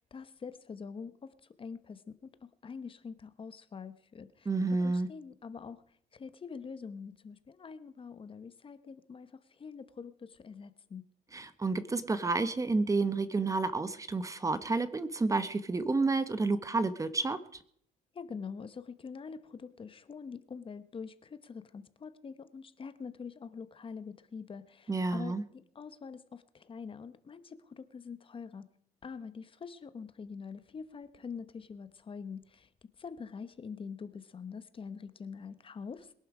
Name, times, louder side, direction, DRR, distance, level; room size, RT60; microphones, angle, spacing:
voice 1, 0.1-4.5 4.8-5.8 6.1-11.0 18.1-28.7 29.0-32.7 33.0-36.1, left 5 dB, 30° left, 12 dB, 1.1 m, -45 dB
voice 2, 4.5-5.1 11.3-17.4 24.9-25.4, right 3 dB, 20° right, 13 dB, 1.0 m, -30 dB
21.5 x 11.5 x 5.0 m, 0.66 s
cardioid pair, 110°, 17 cm